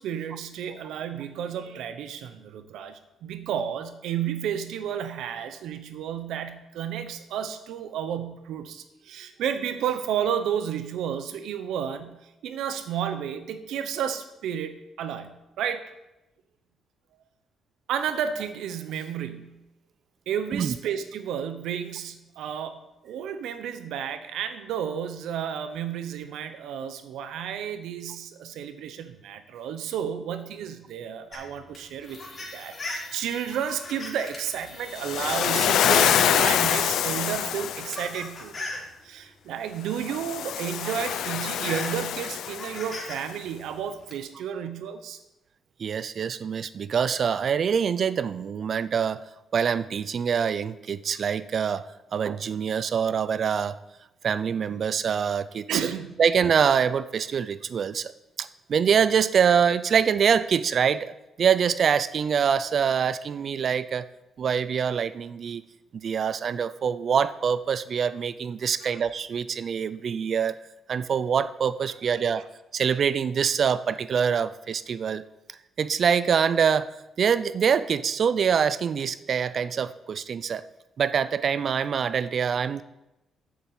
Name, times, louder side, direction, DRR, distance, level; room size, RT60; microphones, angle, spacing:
voice 1, 0.0-15.9 17.9-19.6 20.3-38.6 39.0-45.2 55.7-56.2 68.8-68.9, right 8 dB, 80° right, 10 dB, 1.0 m, -32 dB
sound 1, 31.3-36.8 37.5-38.9 40.1-40.2 40.6-43.2 43.5-44.1, left 2 dB, 40° left, 4.0 m, -39 dB
Waves surf, 35.0-38.2 40.0-43.1, left 10 dB, 75° left, 0.5 m, -25 dB
voice 2, 45.8-49.2 49.5-51.9 52.1-53.8 54.2-55.8 56.2-58.1 58.4-61.1 61.4-64.1 64.4-65.6 66.0-70.6 70.9-72.5 72.7-75.2 75.8-76.9 77.2-80.6 81.0-82.8, right 7 dB, 55° right, 15 dB, 0.6 m, -25 dB
7.4 x 7.4 x 8.4 m, 0.94 s
cardioid pair, 90°, 0 cm